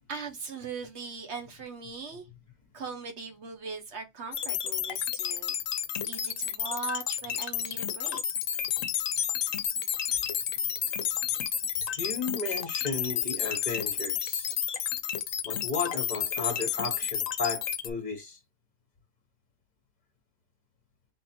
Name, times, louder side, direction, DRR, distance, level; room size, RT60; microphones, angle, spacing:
voice 1, 0.1-2.3 2.7-5.8 6.1-8.2 10.8-10.9, right 4 dB, 55° right, 1.2 m, -40 dB
sound 1, 4.3-17.9, left 9 dB, 75° left, 1.0 m, -31 dB
voice 2, 12.0-14.5 15.4-18.4, left 4 dB, 35° left, 1.1 m, -34 dB
3.7 x 2.7 x 4.2 m
omnidirectional pair, 1.4 m